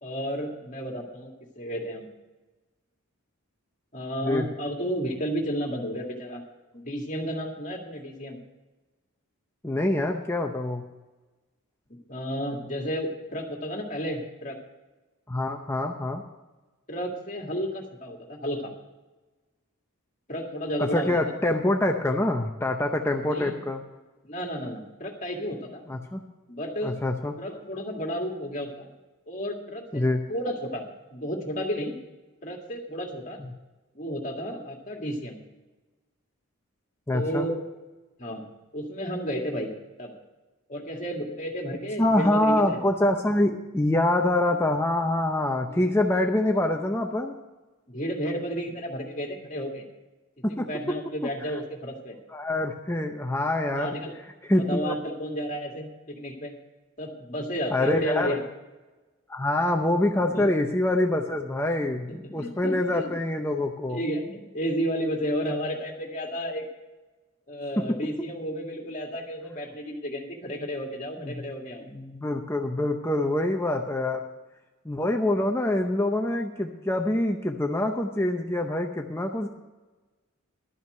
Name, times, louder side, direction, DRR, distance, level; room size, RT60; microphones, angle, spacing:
voice 1, 0.0-2.1 3.9-6.4 6.7-8.4 11.9-14.6 16.9-18.7 20.3-21.4 23.2-23.5 24.2-25.8 26.5-27.0 27.4-28.9 29.3-30.0 30.3-30.8 31.1-31.9 32.4-33.4 33.9-35.4 37.1-37.6 38.2-38.4 38.7-39.7 40.0-40.1 40.7-42.8 45.7-45.8 47.9-49.8 50.4-52.2 53.8-54.1 54.5-56.5 57.0-58.4 60.2-60.5 62.1-63.1 63.9-66.7 67.5-71.9, equal, 35° left, 1 dB, 2.0 m, -32 dB
voice 2, 9.6-10.8 15.3-16.2 20.8-23.8 25.9-26.2 26.8-27.3 29.9-30.2 37.1-37.5 42.0-47.3 50.4-50.7 52.3-53.9 54.5-54.9 57.7-58.3 59.3-64.0 67.8-68.0 71.2-71.4 71.9-74.2 74.8-79.5, left 1 dB, 10° left, 3 dB, 0.6 m, -25 dB
12.5 x 5.8 x 9.0 m, 1.2 s
head